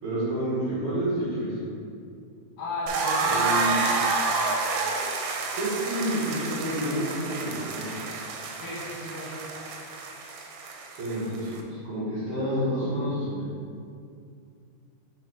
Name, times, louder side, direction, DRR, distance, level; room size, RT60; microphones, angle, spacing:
voice 1, 0.0-1.6 3.2-3.8 5.5-7.9 10.9-11.5 11.8-13.5, equal, 60° right, -10 dB, 2.2 m, -29 dB
voice 2, 2.6-3.5 8.6-9.4, left 2 dB, 70° left, -7 dB, 2.6 m, -35 dB
sound 1, 2.9-11.6, right 3 dB, 85° right, 2.6 m, -29 dB
5.7 x 3.9 x 4.4 m, 2.4 s
omnidirectional pair, 4.5 m